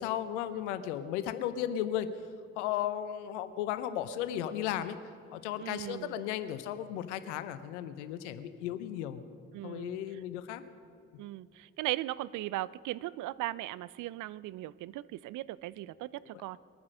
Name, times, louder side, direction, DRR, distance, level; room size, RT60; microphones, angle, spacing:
voice 1, 0.0-2.1 2.6-5.0 5.3-9.2 9.6-10.6, left 11 dB, 80° left, 12 dB, 0.7 m, -35 dB
voice 2, 5.6-6.2 9.5-10.0 11.2-16.6, right 16 dB, 60° right, 20 dB, 0.5 m, -38 dB
21.5 x 9.5 x 6.4 m, 2.6 s
hypercardioid pair, 40°, 35 cm